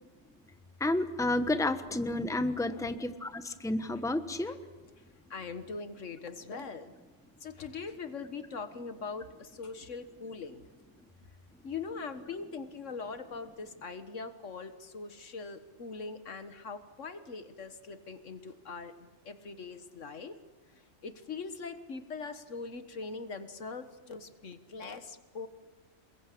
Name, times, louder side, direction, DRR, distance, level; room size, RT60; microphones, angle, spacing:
voice 1, 0.8-4.6, left 2 dB, 5° left, 9 dB, 1.1 m, -31 dB
voice 2, 5.3-6.9 7.4-10.6 11.6-20.4 21.0-25.5, left 4 dB, 80° left, 10 dB, 1.8 m, -42 dB
28.5 x 21.5 x 8.5 m, 1.3 s
omnidirectional pair, 1.3 m